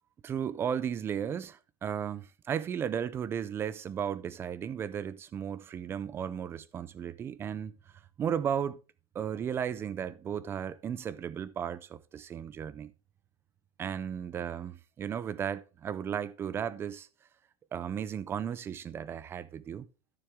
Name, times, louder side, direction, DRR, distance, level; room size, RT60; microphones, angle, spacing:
voice 1, 0.2-7.7 8.2-8.8 9.1-12.9 13.8-17.1 17.7-19.9, right 8 dB, 15° right, 0.4 m, -35 dB
12.5 x 6.9 x 3.5 m
supercardioid pair, 160°, 14 cm